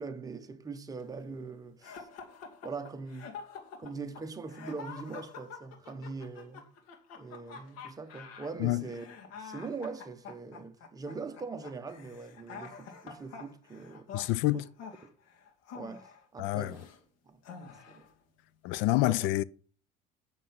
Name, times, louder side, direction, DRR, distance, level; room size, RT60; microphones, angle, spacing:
voice 1, 0.0-2.1 2.6-3.3 3.8-6.7 7.2-9.1 9.4-14.6 15.0-15.1 15.7-16.9 17.3-17.4 17.9-18.0 19.0-19.3, right 4 dB, 15° right, 1.1 m, -42 dB
sound 1, 1.8-17.0 17.4-18.1, left 5 dB, 90° left, 2.5 m, -47 dB
voice 2, 14.1-14.6 16.4-16.7 18.6-19.4, left 18 dB, 70° left, 0.5 m, -27 dB
9.9 x 7.1 x 5.8 m
cardioid pair, 145°, 21 cm